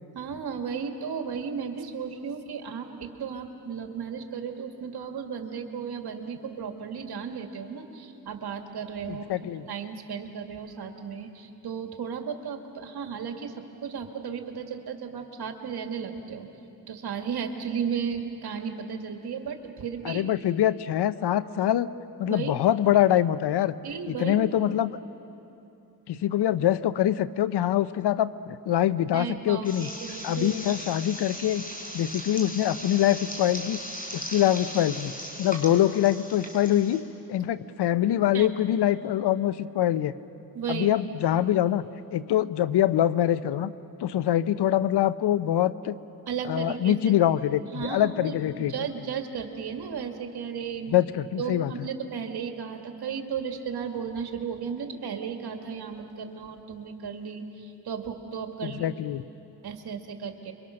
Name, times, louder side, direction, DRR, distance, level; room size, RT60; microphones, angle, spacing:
voice 1, 0.1-16.5 16.9-20.3 22.2-22.6 23.8-24.5 29.1-30.5 38.3-38.5 40.5-41.0 46.3-47.0 47.7-50.9 51.4-58.9 59.6-60.5, right 6 dB, 70° right, 4 dB, 2.2 m, -35 dB
voice 2, 9.1-9.6 20.0-21.9 22.2-23.7 24.1-25.0 26.1-29.9 30.2-31.6 31.9-33.8 34.1-35.1 35.4-37.0 37.3-40.1 40.7-41.8 42.1-43.7 44.0-46.0 46.5-48.7 50.9-51.9 58.6-59.2, left 12 dB, 85° left, 15 dB, 0.8 m, -24 dB
sound 1, 29.6-37.0, equal, 20° left, 4.7 m, -38 dB
28.5 x 24.0 x 6.5 m, 2.9 s
cardioid pair, 80°, 39 cm